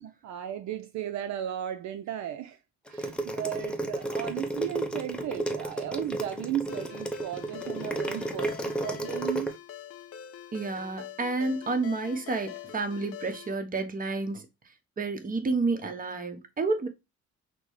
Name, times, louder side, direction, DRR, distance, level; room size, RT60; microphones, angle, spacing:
voice 1, 0.0-2.6 2.9-9.5, right 11 dB, 65° right, 0.5 m, -35 dB
sound 1, 2.9-9.5, right 1 dB, 5° left, 0.7 m, -32 dB
Ringtone, 6.7-13.6, left 9 dB, 50° left, 0.7 m, -44 dB
voice 2, 10.5-14.5 15.0-16.9, right 3 dB, 30° right, 0.9 m, -30 dB
5.9 x 2.1 x 3.1 m
cardioid pair, 90°, 30 cm